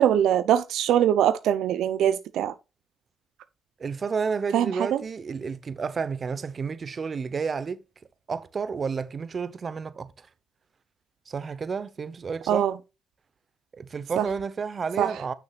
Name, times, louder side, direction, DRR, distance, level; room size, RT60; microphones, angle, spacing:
voice 1, 0.0-2.5 4.5-5.0 12.5-12.7 14.2-14.3 15.0-15.1, right 10 dB, 80° right, 0.6 m, -22 dB
voice 2, 3.8-7.8 8.3-10.3 11.3-12.7 13.8-15.3, right 5 dB, 40° right, 0.9 m, -31 dB
8.5 x 6.4 x 2.4 m
cardioid pair, 90°, 0 cm